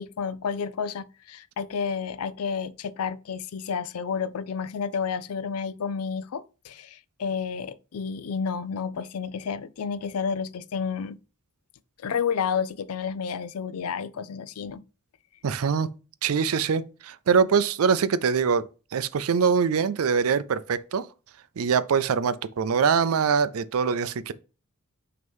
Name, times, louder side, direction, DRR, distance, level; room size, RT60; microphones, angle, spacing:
voice 1, 0.0-11.2 12.0-14.8, left 6 dB, 85° left, 0.4 m, -31 dB
voice 2, 15.4-15.9 16.2-21.1 21.6-24.3, right 6 dB, 75° right, 0.4 m, -23 dB
6.2 x 2.9 x 5.3 m
head